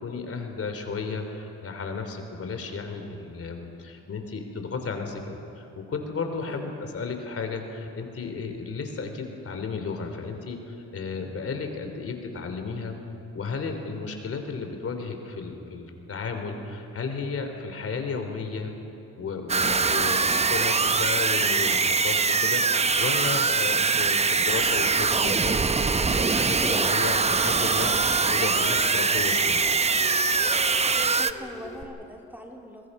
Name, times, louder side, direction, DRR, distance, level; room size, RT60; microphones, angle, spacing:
voice 1, 0.0-13.0 13.3-18.7 19.2-29.7, left 4 dB, 50° left, 5 dB, 3.3 m, -33 dB
voice 2, 6.5-6.8 31.2-32.9, equal, 5° right, 1 dB, 2.5 m, -42 dB
sound 1, 19.5-31.3, right 4 dB, 20° right, 0.7 m, -23 dB
sound 2, 25.6-31.8, left 3 dB, 25° left, 3.0 m, -40 dB
27.5 x 21.5 x 5.5 m, 3.0 s
cardioid pair, 90°, 30 cm